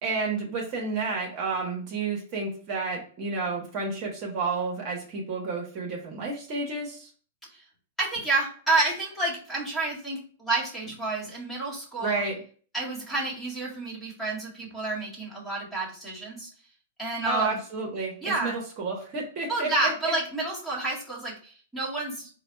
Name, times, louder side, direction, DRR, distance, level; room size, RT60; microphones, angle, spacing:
voice 1, 0.0-7.1 12.0-12.4 17.2-20.1, right 3 dB, 40° right, -1 dB, 1.4 m, -31 dB
voice 2, 8.0-12.2 12.7-16.5 17.0-17.6 18.2-18.6 19.5-22.3, right 2 dB, 5° left, -5 dB, 1.8 m, -29 dB
4.0 x 2.4 x 4.4 m, 0.43 s
hypercardioid pair, 135°, 0 cm